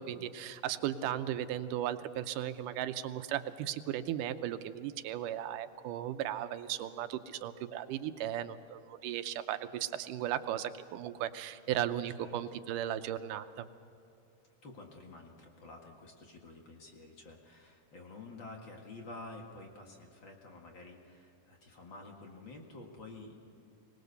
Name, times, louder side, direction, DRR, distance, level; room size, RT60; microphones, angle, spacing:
voice 1, 0.0-13.7, right 11 dB, 85° right, 10 dB, 2.4 m, -36 dB
voice 2, 14.6-23.7, left 2 dB, 40° left, 1 dB, 2.3 m, -50 dB
24.5 x 19.5 x 6.8 m, 2.6 s
omnidirectional pair, 3.6 m